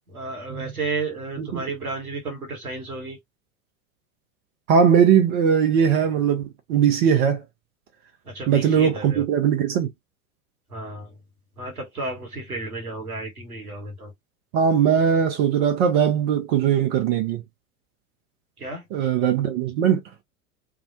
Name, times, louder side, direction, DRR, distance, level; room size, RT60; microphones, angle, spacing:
voice 1, 0.1-3.2 8.2-9.2 10.7-11.1 11.6-14.1 18.6-19.1, right 3 dB, 85° right, 1.3 m, -32 dB
voice 2, 4.7-7.4 8.5-9.9 14.5-17.4 18.9-20.0, right 8 dB, 45° right, 0.7 m, -20 dB
2.3 x 2.1 x 2.7 m
figure-of-eight pair, 85°, 43 cm